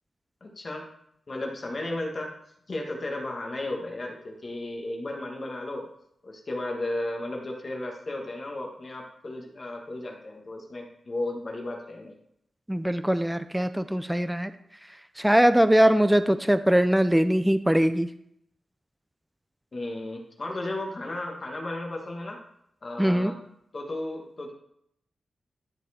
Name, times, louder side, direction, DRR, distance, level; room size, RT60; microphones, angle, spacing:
voice 1, 0.4-0.9 1.3-2.3 2.7-5.9 6.2-12.2 19.7-22.4 22.8-23.4 23.7-24.5, left 2 dB, 40° left, 0 dB, 1.4 m, -34 dB
voice 2, 12.7-14.5 15.2-18.1 23.0-23.3, equal, 5° right, 11 dB, 0.4 m, -21 dB
12.0 x 4.3 x 4.2 m, 0.74 s
wide cardioid pair, 115°, 0 cm